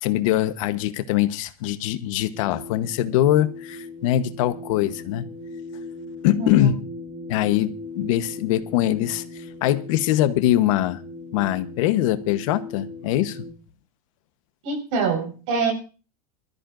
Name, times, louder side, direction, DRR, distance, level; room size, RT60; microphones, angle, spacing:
voice 1, 0.0-5.3 6.2-6.8 7.3-9.2 9.6-11.0 11.3-13.4, left 13 dB, 60° left, 1.1 m, -22 dB
sound 1, 2.3-13.5, left 2 dB, 5° right, 2.6 m, -39 dB
voice 2, 14.6-15.7, right 4 dB, 60° right, 5.0 m, -25 dB
24.0 x 13.5 x 2.6 m
supercardioid pair, 165°, 19 cm